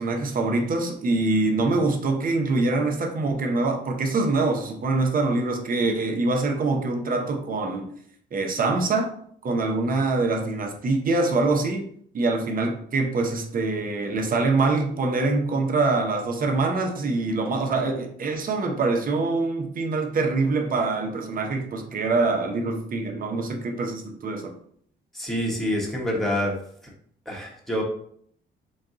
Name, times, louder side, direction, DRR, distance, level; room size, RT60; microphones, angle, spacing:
voice 1, 0.0-7.9 8.3-9.1 9.4-11.9 12.1-24.5, right 3 dB, 45° right, 3 dB, 0.8 m, -24 dB
voice 2, 25.1-26.5 27.3-27.8, equal, ahead, -2 dB, 1.1 m, -26 dB
4.2 x 2.3 x 3.7 m, 0.63 s
cardioid pair, 90°, 20 cm